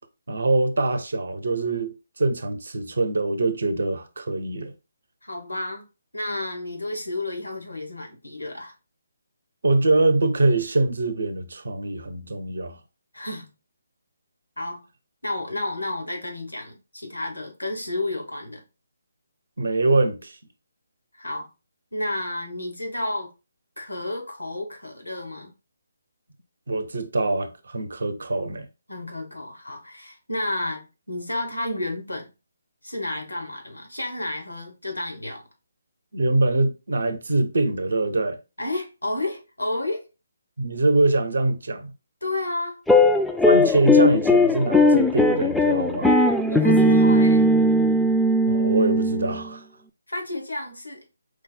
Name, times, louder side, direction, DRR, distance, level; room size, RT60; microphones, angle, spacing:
voice 1, 0.3-4.7 9.6-12.8 19.6-20.4 26.7-28.7 36.1-38.4 40.6-41.9 43.4-46.1 48.5-49.6, right 2 dB, 65° right, 0.7 m, -23 dB
voice 2, 5.2-5.8 6.1-8.7 13.1-13.5 14.6-14.9 15.2-18.6 21.1-21.5 21.9-23.3 23.8-25.5 28.9-32.3 32.8-35.4 38.6-40.1 42.2-42.8 46.5-47.5 50.1-51.0, left 2 dB, 85° left, 1.2 m, -31 dB
sound 1, 42.9-49.4, left 1 dB, 5° left, 0.3 m, -18 dB
4.8 x 2.1 x 3.8 m
figure-of-eight pair, 145°, 0 cm